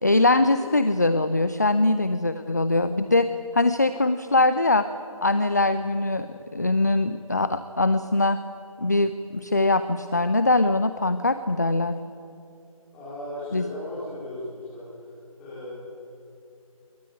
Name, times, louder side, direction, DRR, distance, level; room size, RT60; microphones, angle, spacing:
voice 1, 0.0-4.9 5.2-8.4 8.8-12.0 13.5-13.6, left 2 dB, 30° left, 12 dB, 0.6 m, -22 dB
voice 2, 12.9-14.9 15.4-15.7, left 1 dB, 5° left, -7 dB, 4.3 m, -36 dB
23.0 x 20.0 x 9.5 m, 2.7 s
figure-of-eight pair, 165°, 18 cm